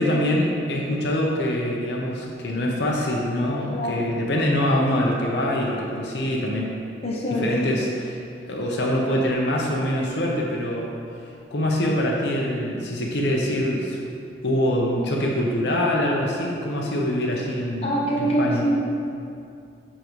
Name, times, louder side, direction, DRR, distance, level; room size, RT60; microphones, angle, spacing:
voice 1, 0.0-6.7 7.3-10.9 11.5-14.0 14.4-18.7, left 1 dB, 70° left, -1 dB, 0.7 m, -24 dB
voice 2, 3.6-4.0 7.0-7.5 17.8-18.9, right 1 dB, 35° left, -3 dB, 0.8 m, -24 dB
10.5 x 3.7 x 3.1 m, 2.4 s
head